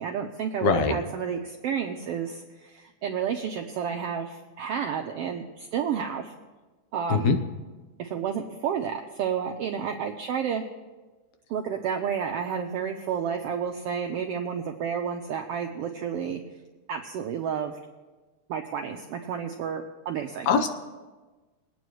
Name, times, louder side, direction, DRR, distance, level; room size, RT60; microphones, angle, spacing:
voice 1, 0.0-6.3 6.9-7.4 8.0-10.7 11.5-16.4 16.9-17.8 18.5-20.5, right 7 dB, 80° right, 3 dB, 1.3 m, -31 dB
voice 2, 0.6-0.9 7.1-7.4 20.5-20.7, left 5 dB, 75° left, 6 dB, 2.2 m, -21 dB
22.5 x 9.2 x 3.1 m, 1.3 s
omnidirectional pair, 3.4 m